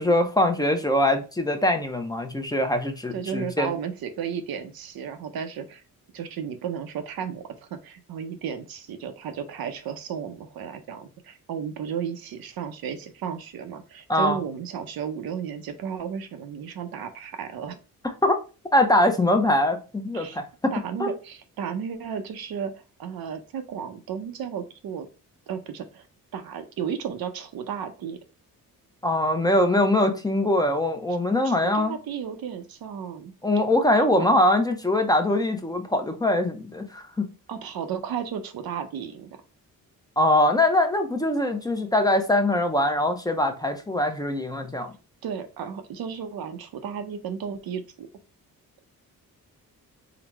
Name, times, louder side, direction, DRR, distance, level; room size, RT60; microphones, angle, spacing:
voice 1, 0.0-3.7 14.1-14.4 18.2-18.3 18.7-20.7 21.0-21.1 29.0-32.0 33.4-37.3 40.2-44.9, left 1 dB, 10° left, 0.5 m, -22 dB
voice 2, 3.1-5.8 6.1-7.4 7.7-17.8 20.1-20.4 20.7-25.1 25.5-26.1 26.3-28.2 31.4-33.3 37.5-39.4 45.2-48.1, right 7 dB, 90° right, 0.6 m, -33 dB
3.8 x 2.0 x 4.4 m
wide cardioid pair, 130°, 35 cm